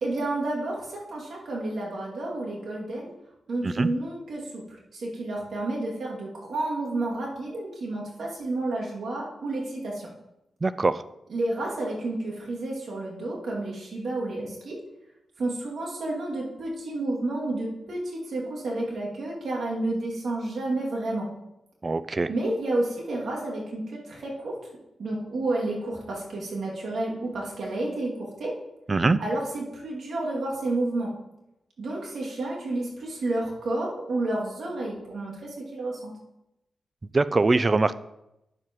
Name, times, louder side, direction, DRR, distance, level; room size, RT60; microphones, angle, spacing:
voice 1, 0.0-3.1 3.5-4.6 4.9-10.1 11.3-14.8 15.4-21.3 22.3-24.6 25.0-28.5 29.2-31.1 31.8-36.1, right 2 dB, 70° right, -3 dB, 2.4 m, -30 dB
voice 2, 10.6-11.0 21.8-22.3 28.9-29.2 37.1-37.9, right 3 dB, 35° right, 15 dB, 0.4 m, -22 dB
9.5 x 7.5 x 3.0 m, 0.89 s
cardioid pair, 70°, 0 cm